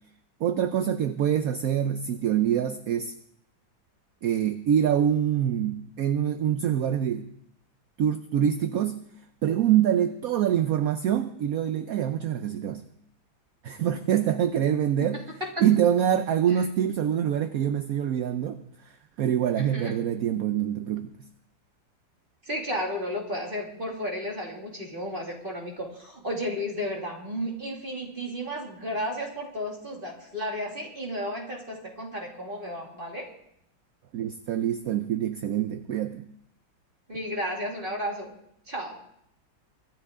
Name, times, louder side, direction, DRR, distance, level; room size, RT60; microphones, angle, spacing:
voice 1, 0.4-3.1 4.2-7.3 8.0-9.0 9.4-12.8 13.6-15.2 15.6-21.1 34.1-36.2, right 10 dB, 65° right, 9 dB, 0.9 m, -25 dB
voice 2, 19.5-20.0 22.4-33.3 37.1-38.3 38.7-39.0, equal, 25° right, -1 dB, 2.5 m, -33 dB
24.0 x 10.5 x 3.7 m, 0.73 s
omnidirectional pair, 2.1 m